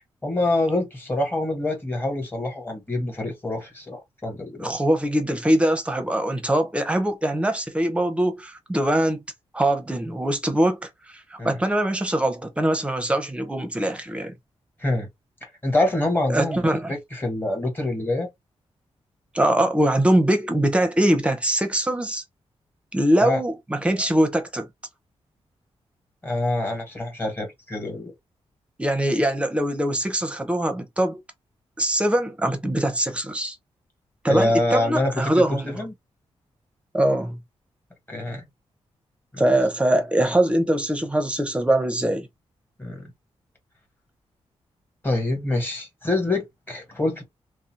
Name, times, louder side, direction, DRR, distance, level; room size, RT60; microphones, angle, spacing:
voice 1, 0.2-4.7 11.4-11.6 14.8-15.1 15.6-18.3 23.2-23.4 26.2-28.1 34.3-35.9 38.1-38.4 39.3-39.5 42.8-43.1 45.0-47.2, left 2 dB, 20° left, 1.3 m, -26 dB
voice 2, 4.6-9.2 9.5-14.3 16.3-16.9 19.3-22.2 22.9-24.7 28.8-31.2 31.8-33.6 34.2-35.7 36.9-37.4 39.4-42.3, right 1 dB, 10° right, 0.6 m, -22 dB
2.6 x 2.0 x 2.8 m
wide cardioid pair, 110°, 11 cm